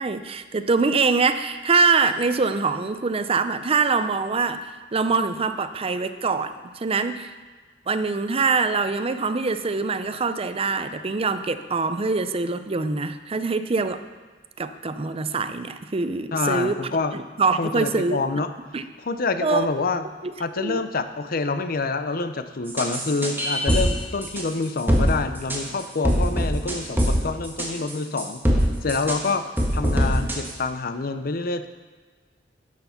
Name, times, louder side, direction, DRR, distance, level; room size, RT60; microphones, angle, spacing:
voice 1, 0.0-7.3 7.9-14.0 14.6-16.8 17.1-18.2 18.7-18.9 19.4-19.7 20.2-20.8, right 4 dB, 30° right, 10 dB, 0.5 m, -24 dB
voice 2, 16.3-17.1 17.6-18.5 19.0-20.1 20.4-28.4 28.8-29.4 29.7-31.7, left 3 dB, 55° left, 9 dB, 0.7 m, -27 dB
sound 1, 22.7-23.9 24.2-24.4 24.9-25.1 25.5-25.6 26.0-27.1 27.4-28.6 28.9-29.2 29.6-30.5, equal, 10° right, 1.6 m, -22 dB
12.5 x 6.8 x 5.7 m, 1.4 s
head